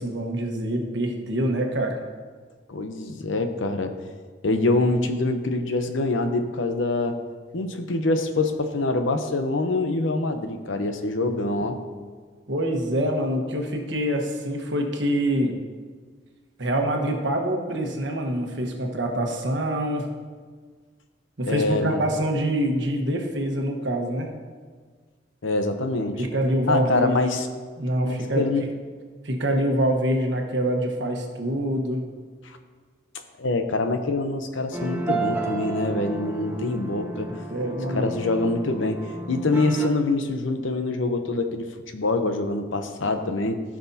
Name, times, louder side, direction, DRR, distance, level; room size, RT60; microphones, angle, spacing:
voice 1, 0.0-2.0 12.5-15.5 16.6-20.1 21.4-24.3 26.2-27.2 27.8-28.5 29.2-32.0 37.5-38.1, right 1 dB, 65° right, 2 dB, 1.3 m, -25 dB
voice 2, 2.7-3.9 4.4-7.2 7.5-11.8 21.4-22.0 25.4-26.2 26.7-27.5 28.0-28.6 33.4-37.3 37.9-39.0 39.3-41.6 41.9-43.6, left 2 dB, 75° left, 7 dB, 0.8 m, -25 dB
sound 1, 34.7-39.9, right 3 dB, 10° right, 0.7 m, -32 dB
15.5 x 6.0 x 2.8 m, 1.5 s
head